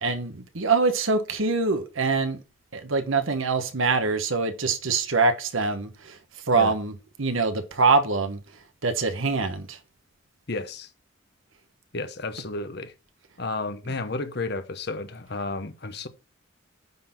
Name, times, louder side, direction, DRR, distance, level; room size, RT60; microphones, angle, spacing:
voice 1, 0.0-2.4 2.7-6.2 6.5-6.9 7.2-8.4 8.8-9.8 13.9-14.0, right 4 dB, 80° right, 1.2 m, -24 dB
voice 2, 10.5-10.9 11.9-12.9 13.4-16.1, left 3 dB, 55° left, 1.0 m, -32 dB
9.4 x 4.0 x 5.9 m
head